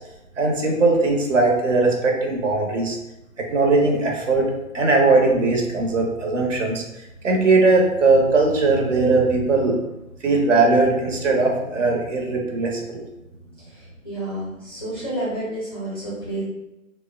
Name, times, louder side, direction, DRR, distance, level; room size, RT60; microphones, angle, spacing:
voice 1, 0.4-3.0 3.4-6.8 7.2-9.8 10.2-13.0, right 3 dB, 60° right, 0 dB, 0.7 m, -19 dB
voice 2, 13.7-16.4, right 1 dB, 20° left, -9 dB, 0.4 m, -30 dB
3.1 x 2.1 x 2.3 m, 0.94 s
figure-of-eight pair, 145°, 42 cm